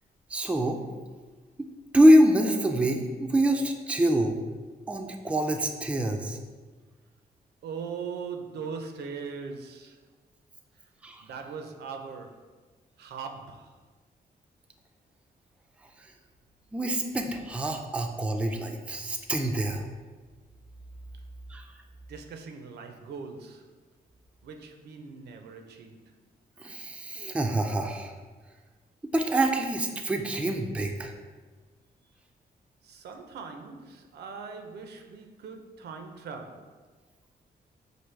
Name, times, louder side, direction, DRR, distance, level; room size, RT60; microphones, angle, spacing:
voice 1, 0.3-0.8 1.9-4.4 4.9-6.4 11.0-11.2 16.7-19.8 21.5-21.6 26.6-28.1 29.1-31.1, right 1 dB, 5° right, 3 dB, 0.3 m, -25 dB
voice 2, 7.6-10.0 11.2-12.4 13.0-13.7 22.1-23.6 24.4-26.0 32.8-36.8, right 5 dB, 80° right, 5 dB, 0.5 m, -40 dB
5.9 x 2.6 x 3.2 m, 1.4 s
wide cardioid pair, 135°, 17 cm